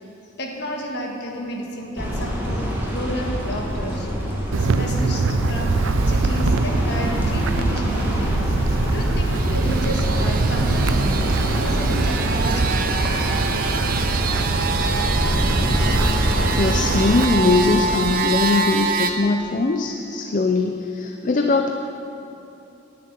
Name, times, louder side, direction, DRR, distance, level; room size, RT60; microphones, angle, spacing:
voice 1, 0.4-4.1 4.6-8.4 8.9-13.0, equal, 55° left, 0 dB, 1.6 m, -31 dB
sound 1, 2.0-17.9, equal, 10° right, 1.8 m, -25 dB
Wind, 4.5-17.2, right 3 dB, 90° right, 0.5 m, -24 dB
sound 2, 9.2-19.1, right 5 dB, 45° right, 0.7 m, -27 dB
voice 2, 16.5-21.7, left 3 dB, 40° left, 4 dB, 0.5 m, -21 dB
10.5 x 6.7 x 8.8 m, 2.8 s
head